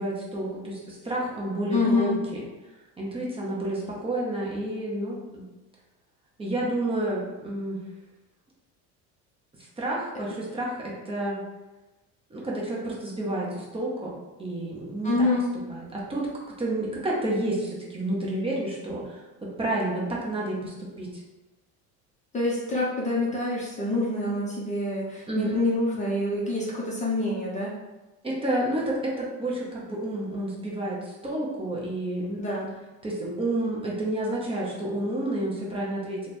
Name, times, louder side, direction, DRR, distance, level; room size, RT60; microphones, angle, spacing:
voice 1, 0.0-2.4 3.0-5.4 6.4-7.8 9.8-11.4 12.3-14.1 14.4-15.3 15.7-16.3 16.6-21.1 25.3-25.6 28.2-32.4 33.0-36.3, right 1 dB, 15° right, -5 dB, 0.8 m, -30 dB
voice 2, 1.7-2.2 15.0-15.5 22.3-27.7 32.4-32.7, left 2 dB, 20° left, -5 dB, 0.7 m, -26 dB
3.1 x 2.2 x 4.2 m, 1.1 s
cardioid pair, 135°, 33 cm